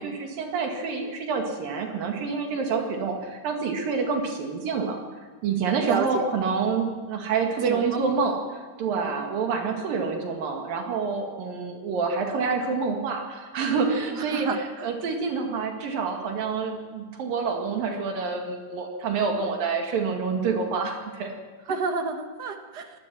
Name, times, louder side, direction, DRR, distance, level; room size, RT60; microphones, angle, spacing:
voice 1, 0.0-5.0 5.4-21.4, right 5 dB, 80° right, 2 dB, 3.7 m, -27 dB
voice 2, 5.9-6.2 7.6-8.0 8.9-9.1 14.1-14.6 21.7-22.9, right 5 dB, 50° right, 6 dB, 1.2 m, -30 dB
24.5 x 19.5 x 6.2 m, 1.4 s
omnidirectional pair, 4.0 m